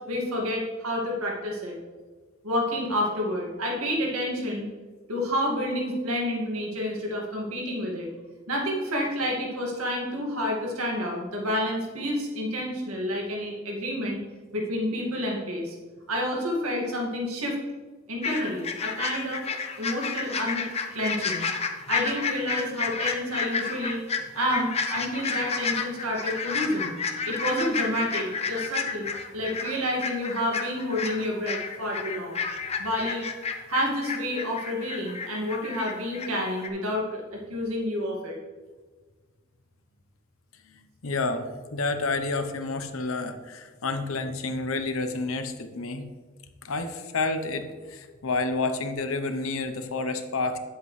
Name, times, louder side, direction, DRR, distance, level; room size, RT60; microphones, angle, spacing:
voice 1, 0.1-1.8 2.4-4.7 5.1-8.1 8.5-14.2 14.5-15.8 16.1-17.6 18.1-20.7 20.9-21.5 21.7-24.0 24.3-26.9 27.2-29.1 29.3-32.4 32.8-33.3 33.7-38.4, equal, 80° right, -1 dB, 2.1 m, -29 dB
sound 1, 18.2-36.3 36.6-36.7, left 5 dB, 30° left, 0.7 m, -31 dB
voice 2, 40.7-46.1 46.6-50.6, left 3 dB, 70° left, 8 dB, 0.9 m, -30 dB
9.4 x 8.0 x 3.3 m, 1.4 s
head